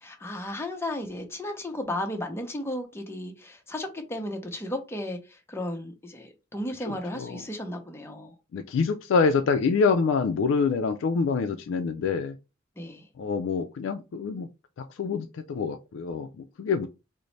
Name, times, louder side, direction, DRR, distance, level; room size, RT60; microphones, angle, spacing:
voice 1, 0.0-8.3 12.8-13.1, left 1 dB, 15° left, 0.6 m, -34 dB
voice 2, 6.9-7.4 8.5-12.3 13.2-14.5 15.0-16.9, left 5 dB, 85° left, 0.3 m, -26 dB
3.9 x 2.0 x 3.1 m
head